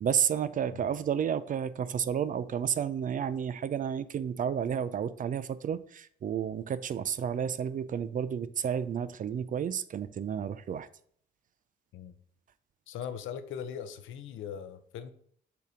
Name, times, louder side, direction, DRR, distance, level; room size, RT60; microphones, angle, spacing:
voice 1, 0.0-10.9, right 8 dB, 40° right, 16 dB, 0.4 m, -31 dB
voice 2, 12.9-15.1, left 8 dB, 80° left, 11 dB, 0.6 m, -40 dB
6.9 x 2.9 x 4.9 m, 0.62 s
cardioid pair, 90°, 20 cm